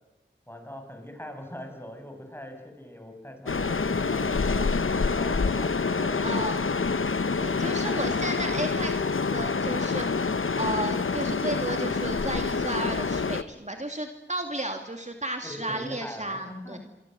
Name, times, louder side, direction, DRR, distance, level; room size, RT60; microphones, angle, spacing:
voice 1, 0.5-4.9 5.2-6.3 15.4-16.8, left 1 dB, 10° left, 4 dB, 6.9 m, -41 dB
sound 1, 3.5-13.4, left 4 dB, 90° left, 1.0 m, -27 dB
voice 2, 6.2-6.6 7.4-9.0 9.3-16.8, right 1 dB, 35° right, 4 dB, 2.6 m, -33 dB
28.0 x 24.5 x 7.8 m, 0.98 s
wide cardioid pair, 50°, 20 cm